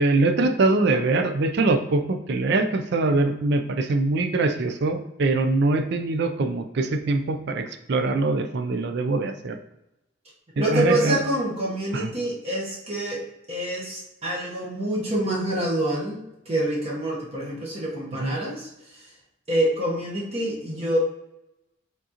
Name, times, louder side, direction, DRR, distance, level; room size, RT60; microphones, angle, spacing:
voice 1, 0.0-9.6 10.6-11.2 11.9-12.1 18.2-18.4, right 2 dB, 55° right, 7 dB, 0.4 m, -23 dB
voice 2, 10.6-13.2 13.5-16.2 16.4-19.1 19.5-21.0, right 1 dB, 30° right, -4 dB, 1.0 m, -26 dB
5.0 x 3.8 x 2.8 m, 0.91 s
head